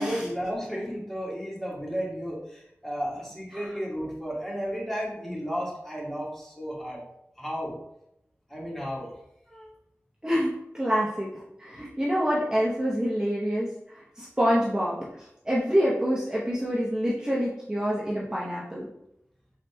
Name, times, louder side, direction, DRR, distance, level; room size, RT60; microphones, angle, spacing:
voice 1, 0.0-7.0 7.4-7.8 8.5-9.1, equal, 5° left, -5 dB, 1.7 m, -33 dB
voice 2, 10.2-18.9, equal, 15° right, -7 dB, 0.9 m, -27 dB
5.0 x 4.0 x 2.2 m, 0.81 s
wide cardioid pair, 55°, 5 cm